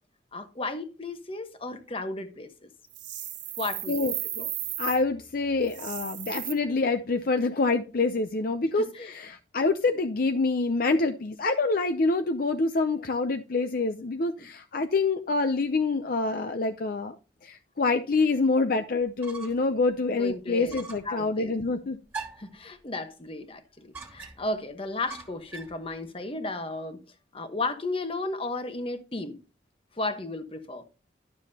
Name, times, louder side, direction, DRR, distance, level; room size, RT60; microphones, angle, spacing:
voice 1, 0.3-2.7 3.6-4.1 4.4-4.5 8.8-9.1 14.4-14.5 20.1-20.8 21.0-21.5 22.4-27.0 27.3-29.4 30.0-30.8, left 2 dB, 30° left, 1.1 m, -34 dB
sound 1, 2.9-5.0 5.6-6.5, right 12 dB, 90° right, 1.4 m, -35 dB
voice 2, 3.9-4.5 4.8-17.2 17.4-22.0, left 3 dB, 55° left, 0.6 m, -26 dB
sound 2, 19.0-19.7 20.1-20.2 20.7-21.1 22.1-22.6 23.9-24.6 25.1-25.8, right 4 dB, 15° right, 2.2 m, -41 dB
12.0 x 7.0 x 2.8 m
head